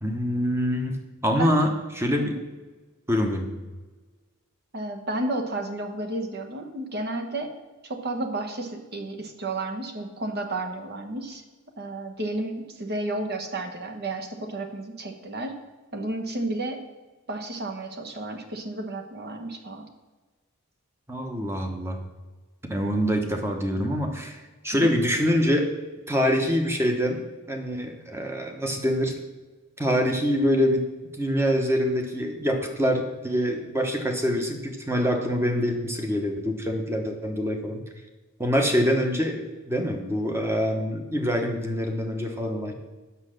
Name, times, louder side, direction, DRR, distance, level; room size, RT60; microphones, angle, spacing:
voice 1, 0.0-1.7 1.9-2.3 3.1-3.5 21.1-22.0 22.6-25.7 26.1-29.1 29.8-30.8 31.1-37.8 38.4-42.7, equal, 10° right, 3 dB, 1.0 m, -25 dB
voice 2, 4.7-7.5 7.8-11.4 11.8-15.6 15.9-16.8 17.3-19.8 24.8-24.9, right 2 dB, 50° right, 5 dB, 1.1 m, -32 dB
8.2 x 6.5 x 6.5 m, 1.3 s
head